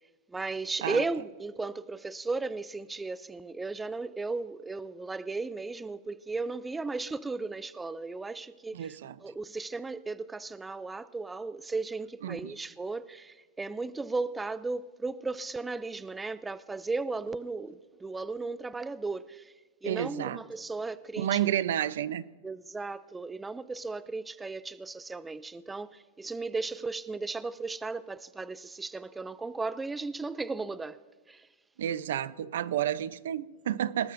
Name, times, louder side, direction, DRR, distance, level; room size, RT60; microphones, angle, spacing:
voice 1, 0.3-19.5 19.8-21.7 22.4-31.0 31.3-31.5, right 3 dB, 10° right, 0.3 m, -35 dB
voice 2, 8.7-9.2 12.2-12.5 19.8-20.4 21.2-22.2 31.8-34.1, right 11 dB, 80° right, 0.6 m, -30 dB
20.5 x 18.5 x 2.6 m
supercardioid pair, 155°, 0 cm